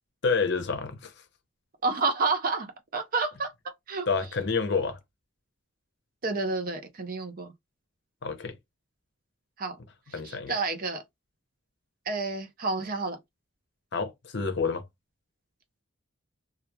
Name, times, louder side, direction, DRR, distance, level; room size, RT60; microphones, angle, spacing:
voice 1, 0.2-1.2 4.1-5.0 8.2-8.6 10.1-10.6 13.9-14.9, left 4 dB, 55° left, 0.6 m, -28 dB
voice 2, 1.8-4.1 6.2-7.5 9.6-9.8 10.1-11.0 12.1-13.2, right 3 dB, 45° right, 0.6 m, -30 dB
3.0 x 2.3 x 2.2 m
head